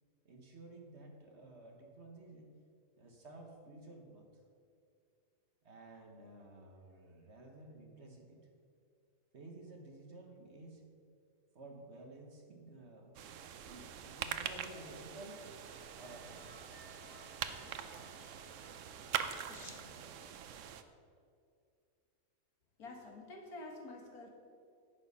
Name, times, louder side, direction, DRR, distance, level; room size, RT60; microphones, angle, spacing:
voice 1, 0.2-2.6 3.0-4.4 5.6-8.4 9.3-10.8 11.5-13.1 13.6-15.4 16.0-16.7, right 2 dB, 45° right, 2 dB, 1.4 m, -53 dB
sound 1, 13.1-20.8, right 8 dB, 65° right, 0.9 m, -43 dB
sound 2, 14.6-19.8, left 1 dB, 45° left, 1.7 m, -61 dB
voice 2, 19.5-20.3 22.8-24.3, left 2 dB, 70° left, 1 dB, 2.0 m, -50 dB
10.5 x 8.4 x 5.5 m, 2.4 s
omnidirectional pair, 1.7 m